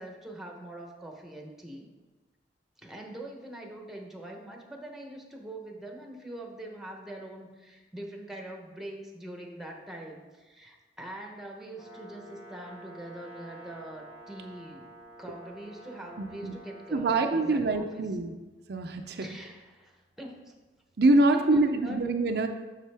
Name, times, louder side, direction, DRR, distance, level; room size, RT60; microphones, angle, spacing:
voice 1, 0.0-1.9 2.8-14.9 15.2-18.0 19.1-20.5 21.3-22.0, right 1 dB, ahead, 1 dB, 0.9 m, -43 dB
Brass instrument, 11.7-17.0, right 1 dB, 55° left, 2.5 m, -49 dB
voice 2, 16.2-16.5 16.9-18.3 18.7-19.3 21.0-22.5, right 2 dB, 65° right, 5 dB, 0.5 m, -25 dB
7.4 x 6.3 x 3.4 m, 1.2 s
head